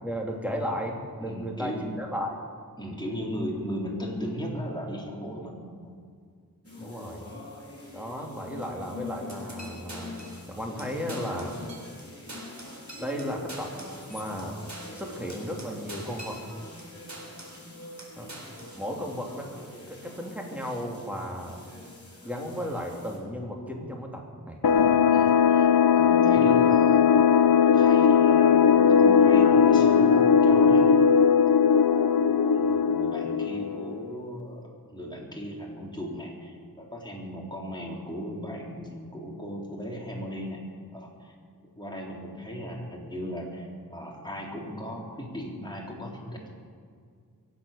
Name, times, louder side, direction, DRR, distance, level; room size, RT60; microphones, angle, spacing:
voice 1, 0.0-2.4 6.8-7.3 7.9-10.2 10.5-11.6 13.0-13.8 14.1-14.6 14.9-16.4 18.2-18.3 18.7-21.6 22.2-24.6, equal, 5° right, -1 dB, 3.2 m, -34 dB
voice 2, 1.2-2.0 2.8-6.0 19.0-19.1 25.1-27.5 27.7-30.9 31.4-32.2 32.5-40.7 40.9-41.4 41.8-46.5, equal, 10° left, -2 dB, 3.8 m, -37 dB
sound 1, 6.6-23.2, left 2 dB, 40° left, 4.6 m, -45 dB
sound 2, 9.3-10.5 10.8-10.9 11.1-12.0 12.3-16.8 17.1-17.7 18.0-18.8, right 1 dB, 50° right, 3.9 m, -44 dB
sound 3, 24.6-34.0, left 7 dB, 80° left, 0.6 m, -19 dB
23.5 x 8.4 x 6.8 m, 2.1 s
wide cardioid pair, 50°, 36 cm